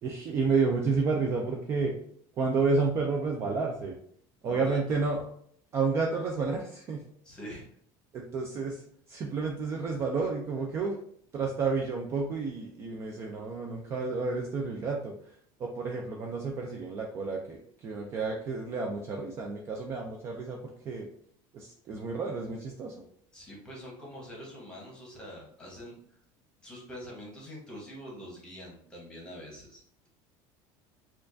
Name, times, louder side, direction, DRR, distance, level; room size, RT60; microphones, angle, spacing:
voice 1, 0.0-1.9 2.4-4.0 4.4-5.2 5.7-7.0 8.1-8.8 9.1-11.0 11.3-15.3 15.6-20.6 20.8-21.1 21.5-23.0, right 4 dB, 25° right, 0 dB, 0.3 m, -30 dB
voice 2, 4.5-5.0 7.2-7.6 23.3-26.0 26.6-30.1, equal, 10° left, -4 dB, 1.0 m, -44 dB
4.3 x 2.4 x 2.5 m, 0.64 s
cardioid pair, 170°, 10 cm